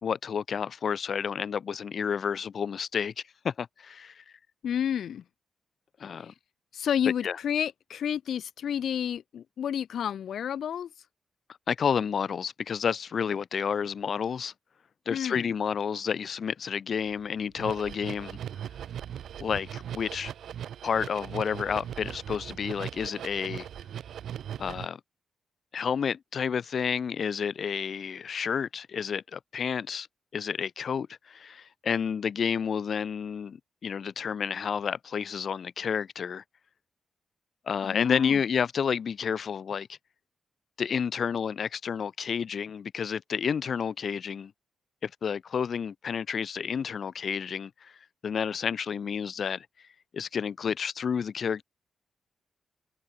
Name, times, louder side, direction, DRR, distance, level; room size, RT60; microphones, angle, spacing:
voice 1, 0.0-4.2 6.0-6.3 7.2-7.4 11.7-14.5 15.0-18.4 19.4-20.3 20.8-23.7 24.6-25.0 25.7-30.1 30.3-36.4 37.7-40.0 40.8-44.5 45.0-47.9 48.2-49.7 50.1-51.6, left 7 dB, 50° left, 1.5 m, -30 dB
voice 2, 4.6-5.2 6.2-6.3 6.7-10.9 15.1-15.5 37.8-38.4, left 9 dB, 75° left, 1.6 m, -30 dB
sound 1, 17.1-17.2 17.5-24.9, right 9 dB, 80° right, 0.6 m, -39 dB
wide cardioid pair, 130°, 0 cm